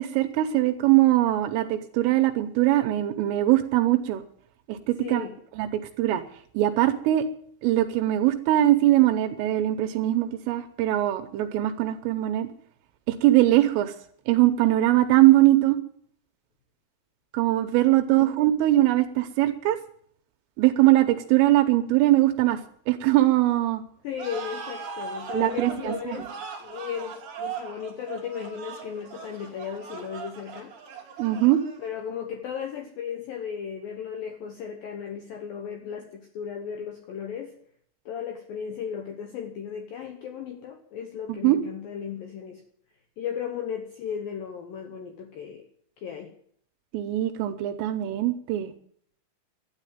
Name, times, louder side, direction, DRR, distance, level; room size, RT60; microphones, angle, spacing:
voice 1, 0.0-4.2 4.7-5.3 5.6-5.7 6.0-6.2 6.6-7.3 7.6-12.5 13.1-13.9 14.3-15.8 17.3-19.8 20.6-22.6 22.9-23.8 25.3-26.2 31.2-31.6 41.3-41.6 46.9-48.7, right 15 dB, 80° right, 8 dB, 3.3 m, -21 dB
voice 2, 5.0-5.4 18.0-18.4 24.0-30.7 31.8-37.5 38.1-42.6 43.2-45.7 46.0-46.3, left 8 dB, 85° left, 5 dB, 2.0 m, -35 dB
sound 1, 24.2-32.0, right 6 dB, 45° right, 2.8 m, -39 dB
12.5 x 9.9 x 9.0 m, 0.63 s
omnidirectional pair, 6.0 m